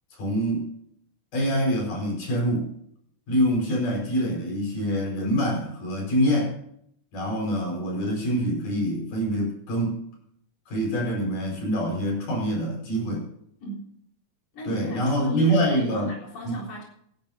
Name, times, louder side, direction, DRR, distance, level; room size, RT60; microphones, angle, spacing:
voice 1, 0.1-0.7 1.3-2.7 3.3-6.6 7.1-10.0 10.7-13.2 14.6-16.1 16.4-16.5, equal, 90° left, 0 dB, 6.9 m, -25 dB
voice 2, 13.6-13.9 14.5-16.8, left 2 dB, 50° left, -4 dB, 5.0 m, -36 dB
26.5 x 11.0 x 2.8 m, 0.69 s
omnidirectional pair, 3.6 m